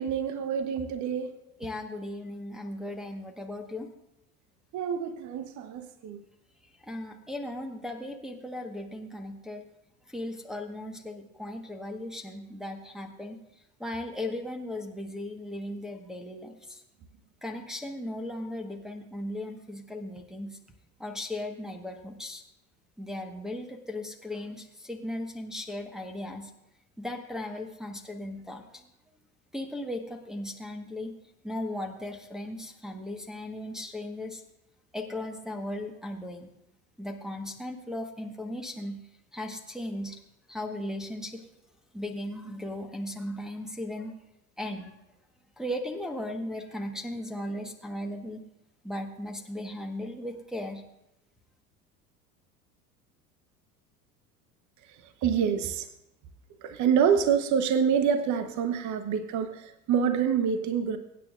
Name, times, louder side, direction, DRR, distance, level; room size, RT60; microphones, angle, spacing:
voice 1, 0.0-1.3 4.7-6.2 55.2-55.9 56.6-61.0, right 7 dB, 40° right, 9 dB, 1.1 m, -26 dB
voice 2, 1.6-3.9 6.8-9.6 10.1-13.4 13.8-16.8 17.4-20.6 21.0-22.4 23.0-26.5 27.0-28.8 29.5-31.1 31.4-34.4 34.9-36.5 37.0-39.0 39.3-40.2 40.5-41.5 41.9-44.2 44.6-45.0 45.6-48.4 48.8-50.8, left 1 dB, ahead, 1 dB, 1.4 m, -37 dB
23.0 x 9.4 x 2.5 m, 0.85 s
figure-of-eight pair, 70°, 45 cm